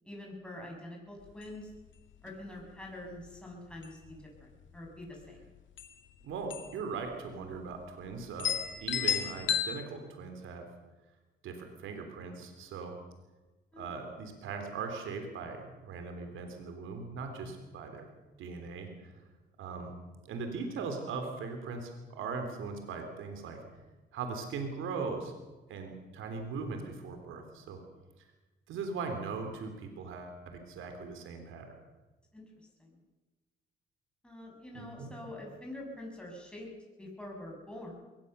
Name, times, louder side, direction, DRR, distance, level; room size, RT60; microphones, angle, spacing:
voice 1, 0.0-1.7 2.2-5.5 13.7-13.9 32.3-32.4 32.8-33.0 34.2-36.7 37.0-37.9, left 1 dB, 5° left, -1 dB, 6.9 m, -45 dB
sound 1, 1.3-1.4 1.7-1.8 2.3-2.6 3.2-3.4 3.7-4.4 5.4-5.5 5.8-5.9 6.5-6.8 7.1-7.2 7.9-8.0 8.4-9.7, left 9 dB, 70° left, 2.1 m, -32 dB
voice 2, 6.2-10.7 11.4-12.9 13.8-18.1 18.4-19.2 19.6-19.9 20.3-23.6 24.1-25.3 25.7-27.8 28.7-31.8 34.7-35.1, right 4 dB, 80° right, 5 dB, 3.4 m, -39 dB
22.0 x 18.5 x 6.8 m, 1.2 s
cardioid pair, 90°, 20 cm